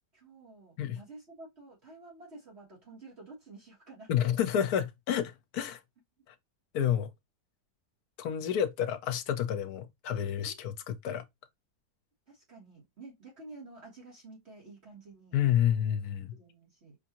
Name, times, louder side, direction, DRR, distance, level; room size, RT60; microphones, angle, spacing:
voice 1, 0.1-4.2 10.4-10.6 12.3-15.4 16.3-17.0, right 3 dB, 40° right, 1.7 m, -51 dB
voice 2, 4.1-5.8 6.3-6.4 6.7-7.1 8.2-11.2 15.3-16.3, left 9 dB, 70° left, 1.1 m, -29 dB
4.8 x 2.6 x 2.8 m
omnidirectional pair, 1.7 m